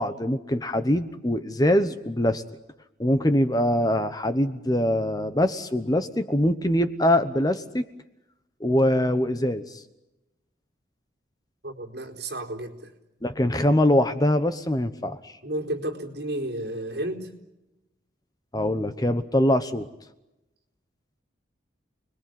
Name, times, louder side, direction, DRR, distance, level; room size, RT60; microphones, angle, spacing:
voice 1, 0.0-2.4 3.0-7.8 8.6-9.8 13.2-15.4 18.5-19.9, left 1 dB, 20° left, 11 dB, 1.0 m, -23 dB
voice 2, 11.6-12.9 15.4-17.3, right 1 dB, 55° right, 2 dB, 4.4 m, -32 dB
30.0 x 21.0 x 9.3 m, 0.97 s
head